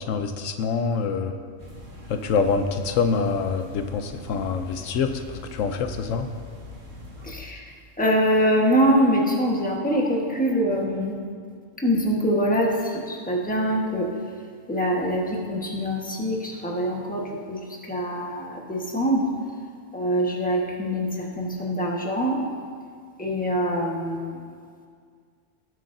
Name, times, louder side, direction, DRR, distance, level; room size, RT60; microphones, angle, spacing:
voice 1, 0.1-1.3 2.1-5.2 5.5-6.3, left 5 dB, 80° left, 7 dB, 1.0 m, -25 dB
sound 1, 1.6-7.3, left 1 dB, 75° right, 2.0 m, -42 dB
voice 2, 7.2-7.6 8.0-11.1 11.8-14.1 14.7-19.3 19.9-21.1 21.4-22.4 23.2-24.4, equal, 5° left, -2 dB, 1.3 m, -24 dB
19.0 x 7.7 x 2.7 m, 2.1 s
omnidirectional pair, 1.3 m